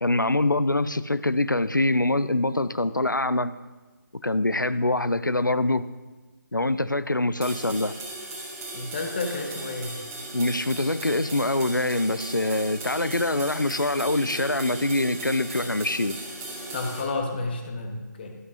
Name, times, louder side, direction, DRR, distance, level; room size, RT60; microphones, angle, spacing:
voice 1, 0.0-3.6 4.2-5.9 6.5-7.9 10.3-16.2, left 2 dB, 90° left, 14 dB, 0.5 m, -24 dB
sound 1, 7.4-17.0, right 2 dB, 15° right, 1.8 m, -37 dB
voice 2, 8.7-10.0 16.7-18.3, left 3 dB, 30° left, 3 dB, 1.2 m, -31 dB
12.5 x 11.5 x 2.6 m, 1.3 s
figure-of-eight pair, 150°, 10 cm